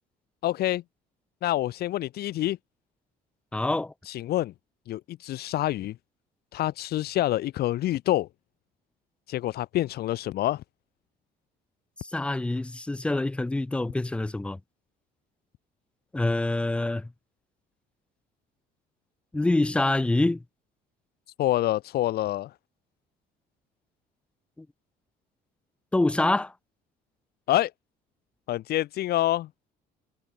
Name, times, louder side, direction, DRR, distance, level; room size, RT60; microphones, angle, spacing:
voice 1, 0.4-0.8 1.4-2.6 4.0-4.5 4.9-5.9 6.5-8.3 9.3-10.6 21.4-22.5 27.5-27.7 28.5-29.5, left 14 dB, 70° left, 1.5 m, -27 dB
voice 2, 3.5-3.9 12.0-14.6 16.1-17.1 19.3-20.4 24.6-24.7 25.9-26.5, left 2 dB, 5° left, 0.3 m, -26 dB
cardioid pair, 110°, 17 cm